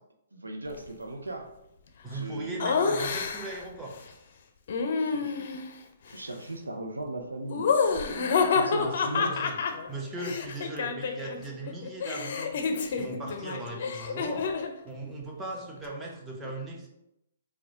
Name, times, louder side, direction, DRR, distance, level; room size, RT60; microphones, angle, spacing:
voice 1, 0.3-1.5 2.1-2.8 5.0-5.5 6.1-9.3, right 2 dB, 90° right, 4 dB, 0.6 m, -38 dB
voice 2, 2.0-4.0 8.8-9.5 9.9-14.5 14.8-16.9, right 2 dB, 10° right, -2 dB, 0.9 m, -39 dB
Laughter, 2.6-3.6 4.7-5.7 7.5-11.4 11.7-14.8, left 5 dB, 55° left, 0.5 m, -28 dB
4.7 x 2.3 x 3.8 m, 0.85 s
figure-of-eight pair, 125°, 0 cm